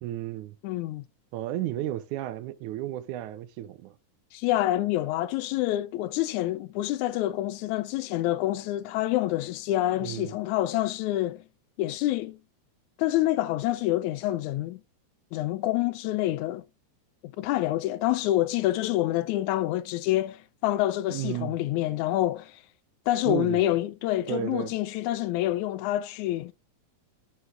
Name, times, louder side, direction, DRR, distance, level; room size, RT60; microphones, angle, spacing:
voice 1, 0.0-0.6 1.3-3.9 10.0-10.3 21.1-21.6 23.3-23.6 24.3-24.7, right 13 dB, 80° right, 2.0 m, -33 dB
voice 2, 0.6-1.0 4.3-11.4 11.8-12.4 13.0-14.8 15.3-16.6 17.2-22.6 23.1-26.5, left 15 dB, 80° left, 1.8 m, -27 dB
9.4 x 4.6 x 3.7 m
omnidirectional pair, 3.6 m